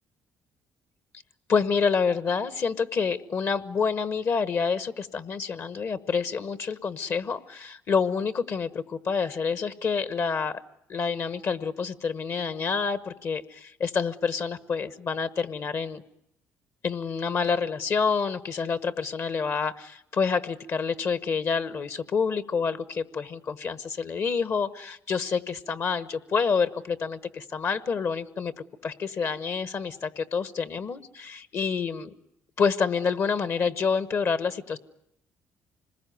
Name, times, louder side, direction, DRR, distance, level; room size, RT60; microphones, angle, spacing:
voice 1, 1.5-10.6 10.9-16.0 16.8-28.5 28.8-32.1 32.6-34.8, left 5 dB, 55° left, 14 dB, 1.1 m, -28 dB
26.0 x 20.5 x 9.3 m, 0.78 s
supercardioid pair, 80°, 6 cm